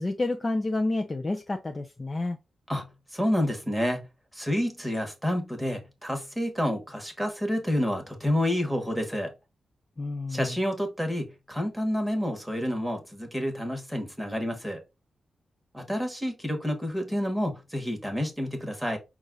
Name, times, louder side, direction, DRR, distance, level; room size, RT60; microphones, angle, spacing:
voice 1, 0.0-2.4 10.0-10.6, left 2 dB, 25° left, 0.4 m, -29 dB
voice 2, 3.1-4.0 4.3-9.3 10.3-14.8 15.7-19.0, equal, ahead, 1.2 m, -29 dB
5.4 x 2.4 x 3.8 m
wide cardioid pair, 140°, 0 cm